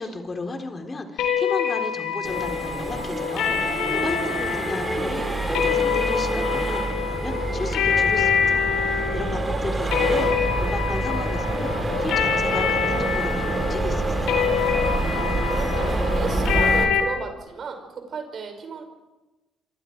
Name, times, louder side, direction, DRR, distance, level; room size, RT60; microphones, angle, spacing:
voice 1, 0.0-14.5, left 3 dB, 35° left, 4 dB, 4.0 m, -34 dB
sound 1, 1.2-17.0, left 7 dB, 70° left, 3.8 m, -26 dB
Accelerating revving vroom, 2.2-16.8, right 2 dB, 25° right, 7.1 m, -26 dB
voice 2, 9.5-10.1 15.5-18.8, right 5 dB, 55° right, 5 dB, 5.6 m, -34 dB
27.0 x 25.0 x 4.7 m, 1.1 s
hypercardioid pair, 45°, 0 cm